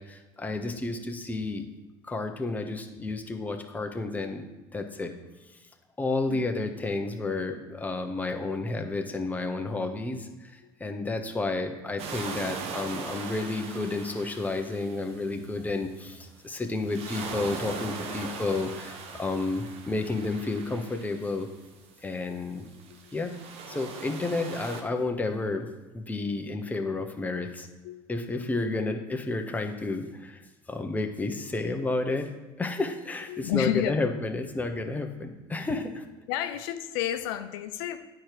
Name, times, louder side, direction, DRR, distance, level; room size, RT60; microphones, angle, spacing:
voice 1, 0.0-1.6 2.0-4.5 4.7-5.1 6.0-21.5 22.0-22.7 23.1-23.4 23.7-27.7 28.1-30.4 30.7-32.3 32.6-36.0, left 3 dB, 15° left, 4 dB, 1.1 m, -31 dB
sound 1, 12.0-15.7 16.8-21.8 22.7-24.8, right 5 dB, 60° right, 1.1 m, -40 dB
voice 2, 33.3-33.9 36.3-38.0, left 12 dB, 85° left, 8 dB, 0.6 m, -31 dB
9.2 x 4.6 x 5.0 m, 1.1 s
supercardioid pair, 90°, 12 cm